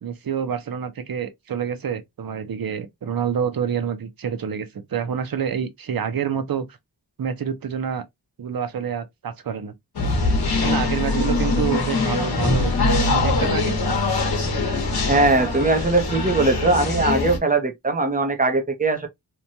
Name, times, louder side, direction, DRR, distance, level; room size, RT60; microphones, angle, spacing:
voice 1, 0.0-6.7 7.2-8.0 8.4-9.7 10.6-13.8, right 7 dB, 60° right, 0.6 m, -27 dB
sound 1, 10.0-17.4, left 3 dB, 65° left, 1.0 m, -22 dB
voice 2, 15.0-19.1, right 2 dB, 20° right, 0.7 m, -20 dB
3.0 x 2.2 x 2.6 m
wide cardioid pair, 95°, 40 cm